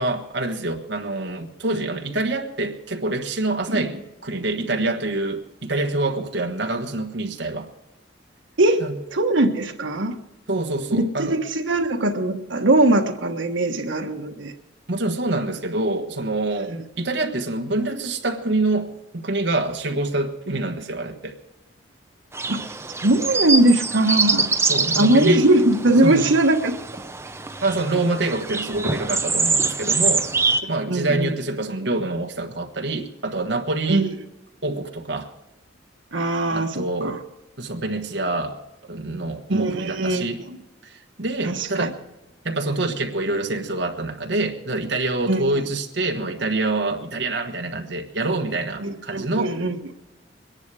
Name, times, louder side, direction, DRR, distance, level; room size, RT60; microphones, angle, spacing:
voice 1, 0.0-4.0 4.2-7.7 8.8-8.9 10.5-11.4 14.9-21.4 24.7-25.4 26.0-26.3 27.6-30.3 30.7-34.0 34.6-35.3 36.4-37.2 37.6-38.6 38.9-40.4 40.8-42.0 42.4-49.6, right 2 dB, 70° right, 4 dB, 1.4 m, -26 dB
voice 2, 9.1-10.1 10.9-14.5 16.7-16.8 22.5-22.6 23.0-24.5 25.0-26.7 30.6-31.3 33.9-34.1 36.1-37.2 39.5-40.6 41.4-41.9 45.3-45.4 48.8-49.8, right 2 dB, 90° right, 4 dB, 1.4 m, -20 dB
sound 1, 22.3-30.6, right 4 dB, 15° right, 0.6 m, -24 dB
23.0 x 10.5 x 4.8 m, 0.97 s
head